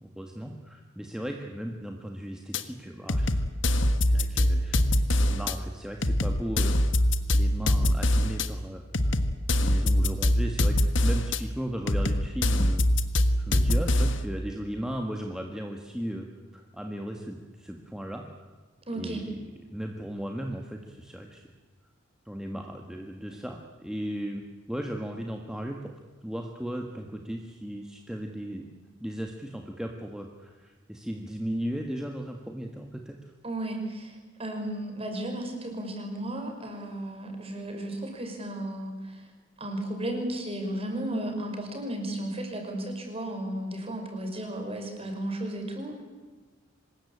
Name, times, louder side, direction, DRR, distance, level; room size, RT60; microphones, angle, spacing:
voice 1, 0.0-4.8 5.1-9.2 9.6-12.9 13.5-16.3 16.5-18.2 18.9-19.3 19.7-21.5 22.2-25.9 26.2-28.6 29.0-33.2, equal, 5° right, 2 dB, 1.6 m, -36 dB
sound 1, 2.5-2.6 3.1-5.5 6.0-8.5 8.9-11.4 11.9-14.3, left 1 dB, 65° left, 1.5 m, -24 dB
voice 2, 18.9-19.2 33.4-39.2 39.6-46.0, right 1 dB, 30° right, 3 dB, 5.4 m, -34 dB
25.5 x 20.5 x 8.7 m, 1.4 s
head